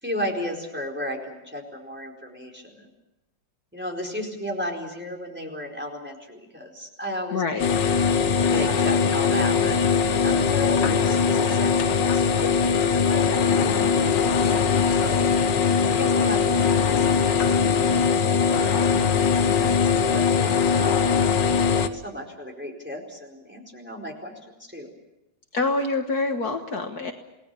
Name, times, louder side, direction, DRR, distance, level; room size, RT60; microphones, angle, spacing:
voice 1, 0.0-2.9 3.7-7.4 8.5-12.7 13.0-15.2 15.9-19.1 19.6-21.1 21.7-24.9, left 1 dB, 5° right, 0 dB, 4.4 m, -34 dB
voice 2, 7.3-7.7 25.5-27.1, left 3 dB, 60° left, 4 dB, 1.9 m, -26 dB
sound 1, 7.6-21.9, left 6 dB, 75° left, 1.8 m, -21 dB
28.5 x 19.0 x 7.0 m, 0.94 s
omnidirectional pair, 2.0 m